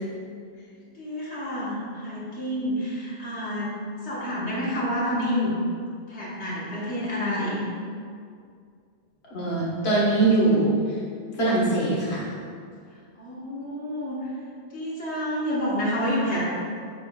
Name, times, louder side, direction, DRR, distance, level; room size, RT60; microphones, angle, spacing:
voice 1, 1.0-3.7 4.0-5.5 6.1-7.6 13.2-14.3 14.7-16.4, equal, 85° left, -7 dB, 1.8 m, -28 dB
voice 2, 9.3-11.0 11.4-12.3, right 2 dB, 70° left, -6 dB, 1.7 m, -22 dB
9.0 x 6.4 x 2.4 m, 2.2 s
omnidirectional pair, 1.1 m